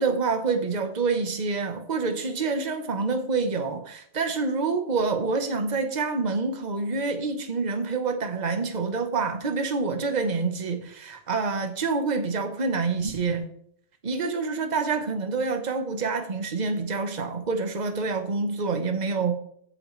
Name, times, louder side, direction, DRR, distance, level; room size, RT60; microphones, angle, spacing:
voice 1, 0.0-13.5 14.0-19.4, right 4 dB, 35° right, 6 dB, 1.3 m, -27 dB
15.5 x 8.5 x 3.3 m, 0.65 s
omnidirectional pair, 1.4 m